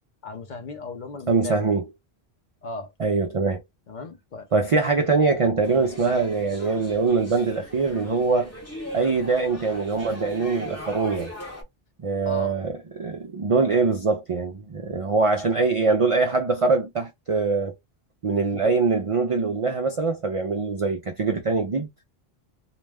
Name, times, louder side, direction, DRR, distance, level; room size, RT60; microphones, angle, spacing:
voice 1, 0.2-1.5 2.6-2.9 3.9-4.5 12.2-12.6 18.5-18.7, left 3 dB, 55° left, 0.7 m, -36 dB
voice 2, 1.3-1.8 3.0-3.6 4.5-8.5 8.9-11.3 12.0-17.7 18.2-21.9, right 4 dB, 55° right, 0.3 m, -23 dB
sound 1, 5.6-11.6, equal, 15° left, 0.7 m, -39 dB
2.3 x 2.1 x 3.3 m
omnidirectional pair, 1.1 m